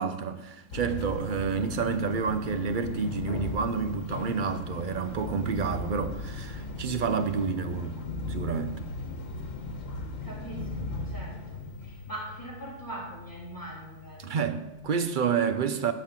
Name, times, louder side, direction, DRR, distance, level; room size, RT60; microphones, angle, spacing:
voice 1, 0.0-8.0 8.3-8.8 14.2-15.9, right 6 dB, 50° right, 0.7 m, -29 dB
sound 1, 0.7-14.3, left 3 dB, 90° left, 1.5 m, -37 dB
voice 2, 10.2-14.4, right 1 dB, 15° left, 3.5 m, -42 dB
12.0 x 4.3 x 7.3 m
omnidirectional pair, 1.3 m